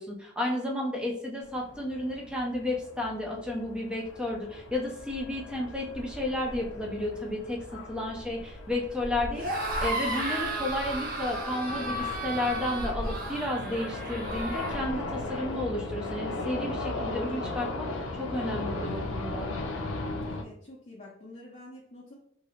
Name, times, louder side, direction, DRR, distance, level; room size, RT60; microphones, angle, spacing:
voice 1, 0.0-9.5 9.8-19.5, left 1 dB, 5° right, -1 dB, 0.6 m, -32 dB
sound 1, 1.4-20.4, left 2 dB, 75° left, 0.5 m, -37 dB
sound 2, 9.3-14.8, right 1 dB, 50° right, 0.8 m, -34 dB
voice 2, 20.3-22.1, left 1 dB, 35° left, -5 dB, 0.6 m, -48 dB
3.0 x 2.7 x 2.8 m, 0.66 s
head